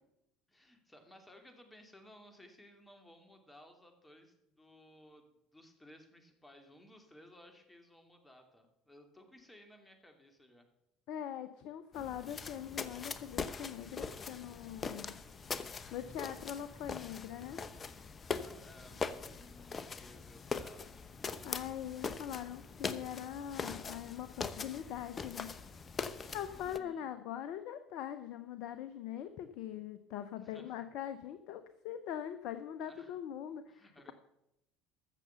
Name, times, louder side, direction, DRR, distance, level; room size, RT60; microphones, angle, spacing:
voice 1, 0.5-10.7 18.4-21.0 26.5-27.1 30.4-30.8 32.8-33.2 33.7-34.1, left 1 dB, 10° left, 5 dB, 2.6 m, -59 dB
voice 2, 11.1-15.2 15.9-17.6 21.4-25.5 26.3-34.1, left 10 dB, 65° left, 11 dB, 0.7 m, -42 dB
sound 1, 11.9-26.8, left 5 dB, 35° left, 0.9 m, -42 dB
14.5 x 6.8 x 6.8 m, 0.84 s
hypercardioid pair, 65°, 0 cm